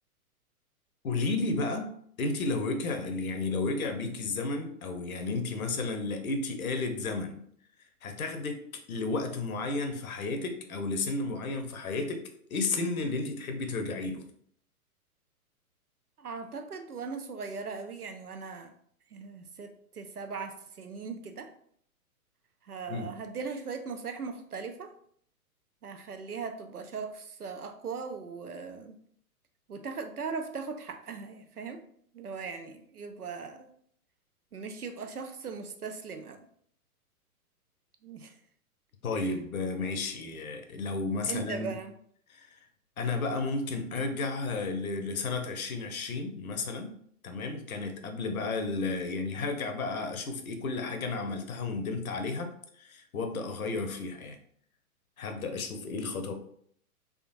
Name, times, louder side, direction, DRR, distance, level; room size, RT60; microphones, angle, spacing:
voice 1, 1.0-1.9 2.2-7.4 8.0-14.3 22.9-23.1 39.0-41.8 42.3-42.6 43.0-47.0 47.2-54.4 55.2-56.3, left 3 dB, 70° left, 6 dB, 0.9 m, -33 dB
voice 2, 16.2-18.7 19.1-21.5 22.6-24.9 25.8-29.0 29.7-31.8 32.1-33.7 34.5-36.4 38.0-38.3 39.2-39.3 41.3-41.9, right 5 dB, 85° right, 7 dB, 0.7 m, -39 dB
3.7 x 3.4 x 2.6 m, 0.64 s
figure-of-eight pair, 115°, 44 cm